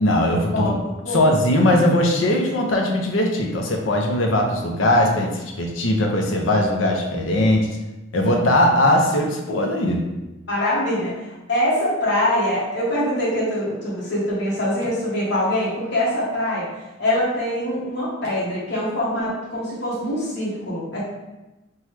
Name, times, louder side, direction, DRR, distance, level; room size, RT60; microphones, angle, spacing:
voice 1, 0.0-0.7 1.1-5.3 5.6-7.7 8.1-10.0, left 1 dB, 85° left, 1 dB, 0.5 m, -19 dB
voice 2, 0.5-1.2 10.5-16.7 17.0-21.0, left 1 dB, 60° left, -7 dB, 1.1 m, -24 dB
3.0 x 2.2 x 3.2 m, 1.0 s
head